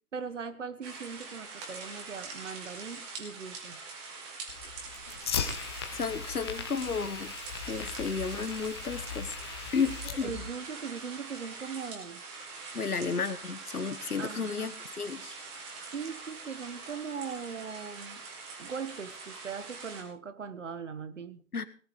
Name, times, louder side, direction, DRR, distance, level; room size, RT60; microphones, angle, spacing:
voice 1, 0.1-3.8 10.0-12.2 14.2-14.8 15.9-18.2 18.6-21.4, right 6 dB, 50° right, 13 dB, 1.7 m, -40 dB
sound 1, 0.8-20.0, right 4 dB, 15° right, 2.2 m, -44 dB
Fire, 4.5-10.5, left 7 dB, 15° left, 1.0 m, -38 dB
voice 2, 5.9-7.3 7.7-9.4 9.7-10.3 12.7-15.3 21.5-21.6, left 5 dB, 75° left, 13 dB, 1.5 m, -33 dB
18.0 x 11.0 x 4.8 m, 0.42 s
figure-of-eight pair, 145°, 45 cm